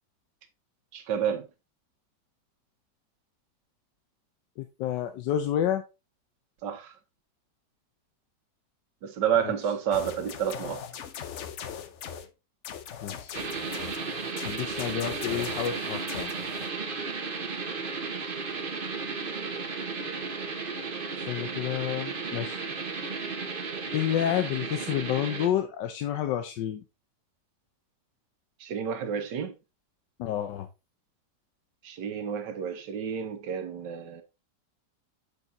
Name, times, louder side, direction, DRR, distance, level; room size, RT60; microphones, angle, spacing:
voice 1, 0.9-1.5 6.6-6.9 9.0-10.8 28.6-29.5 31.8-34.2, right 8 dB, 80° right, 1.6 m, -30 dB
voice 2, 4.6-5.8 9.4-9.5 13.0-13.4 14.4-16.3 21.2-22.6 23.9-26.8 30.2-30.7, left 11 dB, 90° left, 1.3 m, -29 dB
sound 1, 9.9-12.3 12.6-16.7, left 8 dB, 60° left, 0.8 m, -40 dB
sound 2, 13.3-25.5, right 4 dB, 35° right, 1.1 m, -34 dB
7.3 x 6.5 x 2.7 m
omnidirectional pair, 1.8 m